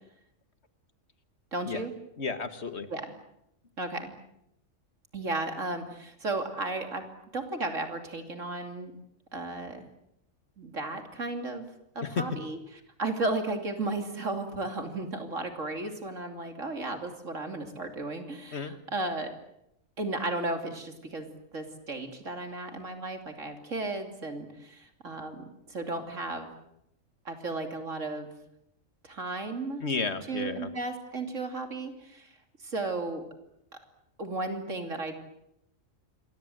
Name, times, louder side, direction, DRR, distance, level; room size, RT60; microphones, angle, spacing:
voice 1, 1.5-1.9 2.9-3.1 3.8-4.1 5.1-7.0 7.3-8.9 9.3-9.8 10.6-11.7 11.9-12.6 13.0-19.3 20.0-21.3 21.5-26.5 27.2-28.3 29.0-29.8 30.3-32.3 32.6-33.2 34.2-35.2, right 2 dB, 70° right, 6 dB, 3.2 m, -34 dB
voice 2, 2.2-2.9 12.0-12.3 18.5-18.8 29.8-30.7, left 4 dB, 55° left, 11 dB, 1.9 m, -32 dB
27.5 x 22.5 x 7.9 m, 0.79 s
omnidirectional pair, 1.4 m